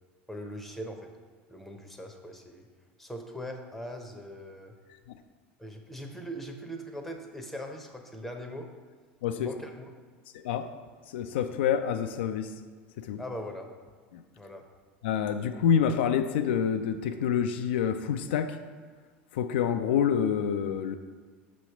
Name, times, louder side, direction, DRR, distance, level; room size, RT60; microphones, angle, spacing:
voice 1, 0.3-1.1 1.5-2.7 3.0-4.7 5.6-8.7 9.3-9.9 13.2-13.7 14.4-14.6, equal, ahead, 3 dB, 0.8 m, -40 dB
voice 2, 10.3-10.7 11.1-12.5 13.0-13.2 14.1-14.2 15.0-18.6 19.3-20.9, left 8 dB, 80° left, 8 dB, 0.4 m, -27 dB
6.1 x 3.1 x 5.7 m, 1.6 s
hypercardioid pair, 95°, 6 cm